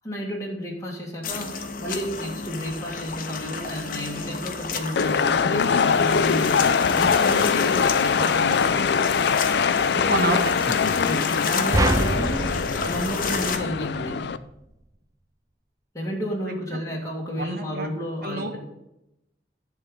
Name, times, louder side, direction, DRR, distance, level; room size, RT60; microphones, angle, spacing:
voice 1, 0.0-8.7 10.0-10.4 11.0-12.5 12.8-14.3 15.9-18.6, equal, 20° left, -2 dB, 1.9 m, -32 dB
sound 1, 1.2-13.6, left 5 dB, 50° left, 0.9 m, -32 dB
sound 2, 5.0-14.4, left 6 dB, 65° left, 0.4 m, -22 dB
voice 2, 10.0-11.0 17.4-17.9 18.2-18.6, right 2 dB, 55° right, 5 dB, 1.3 m, -28 dB
sound 3, 11.7-14.1, right 2 dB, 20° right, 0.4 m, -26 dB
11.0 x 3.7 x 7.5 m, 0.86 s
head